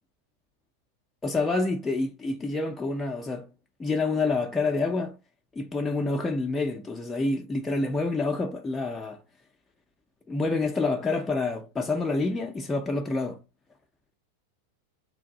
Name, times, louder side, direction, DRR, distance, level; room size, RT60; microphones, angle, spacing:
voice 1, 1.2-3.5 3.8-5.2 5.5-9.2 10.3-13.4, left 3 dB, 15° left, 0.4 m, -27 dB
3.4 x 2.5 x 3.7 m
figure-of-eight pair, 90°, 0 cm